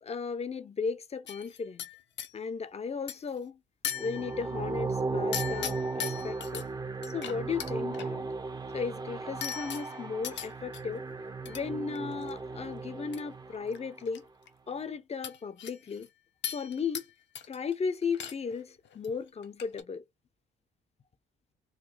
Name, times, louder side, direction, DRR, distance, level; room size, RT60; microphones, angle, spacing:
voice 1, 0.0-1.9 2.3-3.6 4.0-6.6 7.1-8.3 8.7-11.1 11.5-14.3 14.7-16.1 16.5-17.1 17.5-20.0, left 5 dB, 30° left, 0.6 m, -35 dB
sound 1, 1.3-2.3 3.1-3.4 3.8-4.6 5.3-6.6 7.0-8.1 9.4-10.8 11.5-11.6 11.9-12.3 13.1-13.2 13.5-14.2 14.5-14.6 15.2-16.1 16.4-17.1 17.3-17.7 18.0-18.6 18.8-19.1 19.4-19.8, left 9 dB, 65° left, 0.8 m, -39 dB
sound 2, 3.9-14.0, right 3 dB, 20° right, 0.6 m, -36 dB
3.9 x 2.2 x 3.2 m
cardioid pair, 90°, 20 cm